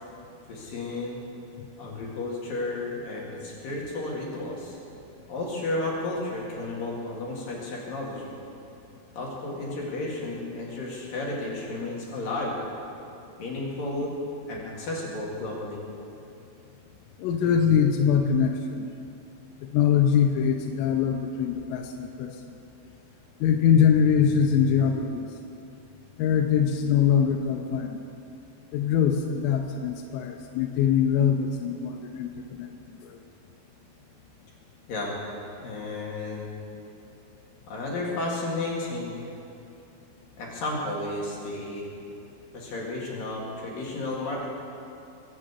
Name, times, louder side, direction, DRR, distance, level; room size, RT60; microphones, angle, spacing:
voice 1, 0.5-1.2 1.8-4.8 5.3-8.3 9.1-12.5 13.4-14.1 14.5-15.8 34.9-35.2 35.6-36.5 37.7-39.3 40.4-41.9 42.5-44.5, left 2 dB, 50° left, -3 dB, 3.2 m, -32 dB
voice 2, 17.2-18.9 19.7-22.3 23.4-25.3 26.2-28.0 28.7-32.7 33.0-33.2, left 7 dB, 90° left, 3 dB, 3.3 m, -23 dB
21.5 x 7.6 x 8.2 m, 2.8 s
omnidirectional pair, 6.0 m